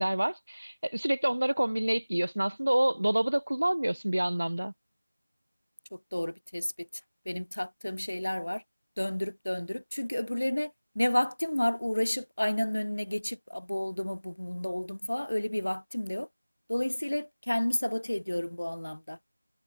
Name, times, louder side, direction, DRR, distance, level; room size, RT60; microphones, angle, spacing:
voice 1, 0.0-4.7, right 1 dB, 75° right, 0.8 m, -28 dB
voice 2, 5.9-6.9 7.2-8.6 9.0-16.3 16.7-19.2, left 1 dB, 80° left, 1.2 m, -31 dB
figure-of-eight pair, 175°, 0 cm